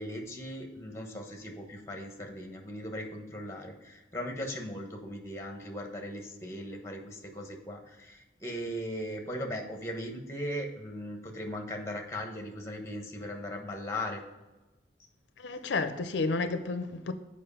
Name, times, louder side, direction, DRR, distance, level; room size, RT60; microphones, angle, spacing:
voice 1, 0.0-14.2, equal, 15° left, 1.1 m, -38 dB
voice 2, 15.4-17.1, left 3 dB, 80° left, 0.5 m, -31 dB
7.7 x 5.1 x 5.5 m
head